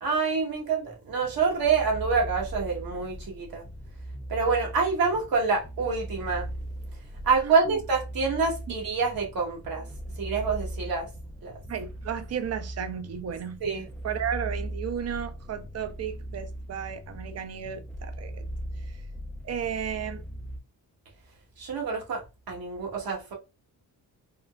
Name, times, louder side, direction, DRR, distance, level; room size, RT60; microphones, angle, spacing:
voice 1, 0.0-3.6 4.3-6.5 7.3-9.8 10.2-11.1 11.4-11.5 13.6-13.9 21.6-22.2 22.5-23.3, right 5 dB, 65° right, 1.2 m, -26 dB
sound 1, 1.2-20.6, right 1 dB, 5° left, 0.3 m, -39 dB
voice 2, 7.4-7.8 11.7-13.6 14.0-18.4 18.8-19.0 19.4-20.2, right 8 dB, 40° right, 0.6 m, -34 dB
3.7 x 2.1 x 2.2 m
cardioid pair, 80°, 39 cm